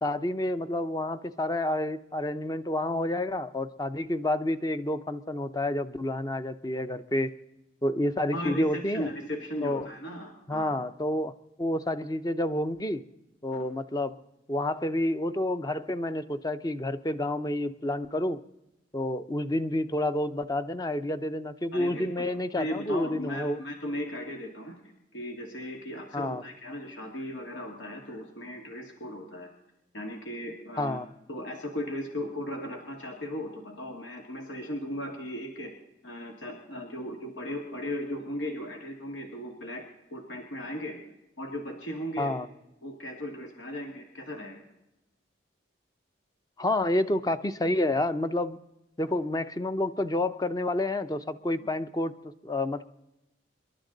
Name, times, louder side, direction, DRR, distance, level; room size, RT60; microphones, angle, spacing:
voice 1, 0.0-7.3 7.8-9.1 9.6-9.9 10.5-11.3 11.6-13.0 13.4-14.2 14.5-18.4 18.9-23.6 26.1-26.4 30.8-31.1 42.2-42.5 46.6-48.6 49.0-52.1 52.4-52.8, left 1 dB, 20° left, 11 dB, 0.6 m, -29 dB
voice 2, 8.3-10.7 13.5-13.7 21.7-22.3 22.6-29.5 29.9-31.0 31.3-35.7 36.0-39.8 40.1-41.0 41.4-42.4 42.8-44.6 51.6-51.7, equal, 85° left, 2 dB, 2.0 m, -37 dB
26.5 x 11.5 x 3.9 m, 0.90 s
head